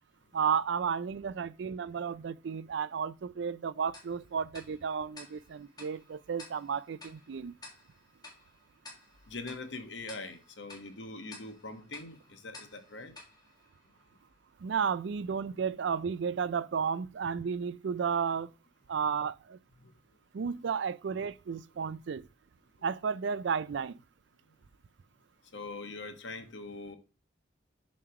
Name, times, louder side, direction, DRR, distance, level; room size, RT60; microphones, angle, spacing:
voice 1, 0.3-7.5 14.6-18.5 18.9-19.6 20.3-22.3 22.8-24.0, right 6 dB, 70° right, 0.4 m, -33 dB
Tick-tock, 3.9-14.4, left 2 dB, 20° left, 1.7 m, -54 dB
voice 2, 9.3-13.1 19.0-19.1 19.8-19.9 25.5-27.0, left 3 dB, 70° left, 1.2 m, -43 dB
7.3 x 3.2 x 5.8 m
head